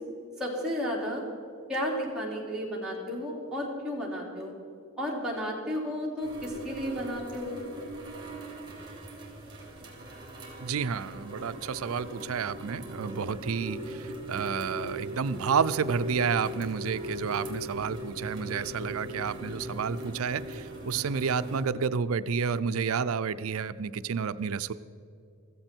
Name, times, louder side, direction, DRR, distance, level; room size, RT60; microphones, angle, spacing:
voice 1, 0.4-1.2 1.7-4.6 5.0-7.6, equal, 5° right, -5 dB, 3.2 m, -33 dB
sound 1, 6.2-21.6, right 1 dB, 20° right, 3.1 m, -39 dB
voice 2, 10.6-24.7, right 6 dB, 80° right, 13 dB, 0.5 m, -30 dB
15.5 x 15.0 x 4.5 m, 2.5 s
head